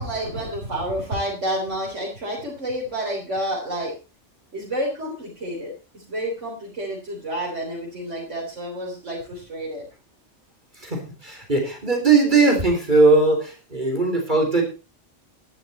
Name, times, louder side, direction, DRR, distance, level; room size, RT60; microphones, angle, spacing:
voice 1, 0.0-3.9 4.5-9.8, right 1 dB, 80° right, -3 dB, 4.2 m, -29 dB
voice 2, 10.8-14.6, right 3 dB, 40° right, 2 dB, 3.9 m, -19 dB
12.0 x 12.0 x 4.3 m, 0.32 s
omnidirectional pair, 1.2 m